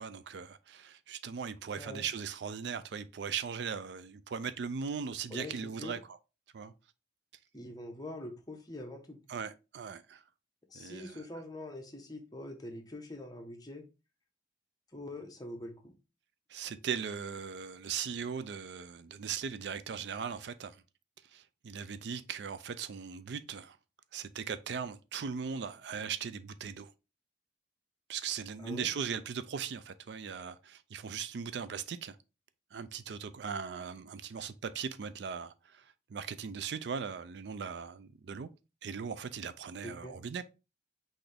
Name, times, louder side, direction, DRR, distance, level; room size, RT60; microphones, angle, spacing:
voice 1, 0.0-6.0 6.5-6.7 9.3-10.2 10.7-11.2 16.5-20.8 21.3-23.8 24.1-26.9 28.1-32.2 32.7-38.5 38.8-40.4, right 6 dB, 65° right, 0.4 m, -39 dB
voice 2, 1.7-2.0 5.3-5.9 7.5-9.2 10.7-13.8 14.9-15.9 28.6-28.9 39.8-40.1, left 1 dB, 20° left, 0.8 m, -44 dB
5.9 x 2.6 x 3.3 m
head